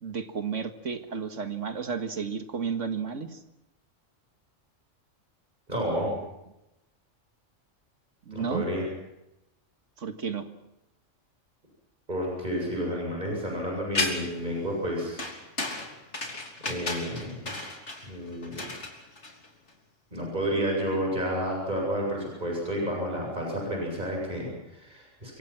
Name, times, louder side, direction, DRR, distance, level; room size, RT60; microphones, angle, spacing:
voice 1, 0.0-3.4 8.3-8.6 10.0-10.5, right 6 dB, 80° right, 7 dB, 2.1 m, -32 dB
voice 2, 5.7-6.2 8.3-8.8 12.1-15.3 16.6-17.6 18.0-18.7 20.1-25.4, equal, 35° right, -1 dB, 8.1 m, -30 dB
sound 1, 13.9-14.5 15.2-19.7, left 2 dB, 70° left, 3.6 m, -33 dB
26.0 x 24.0 x 6.1 m, 0.91 s
omnidirectional pair, 1.3 m